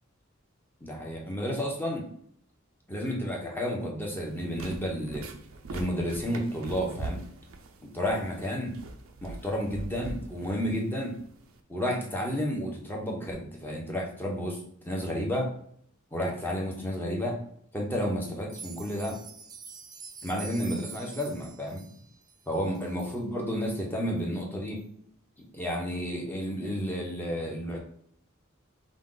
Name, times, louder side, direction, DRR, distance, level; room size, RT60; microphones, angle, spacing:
voice 1, 0.8-2.1 2.9-5.3 5.7-7.2 7.8-8.7 9.2-11.2 11.7-14.6 14.8-15.5 16.1-17.4 17.7-19.2 20.2-21.8 22.5-24.8 25.5-27.8, equal, 10° left, -2 dB, 0.9 m, -31 dB
sound 1, 4.2-11.6, right 2 dB, 75° right, 0.6 m, -42 dB
sound 2, 18.4-23.2 23.6-23.7 24.2-24.3 24.8-24.9, right 5 dB, 20° right, 0.4 m, -46 dB
5.1 x 2.4 x 3.9 m, 0.66 s
head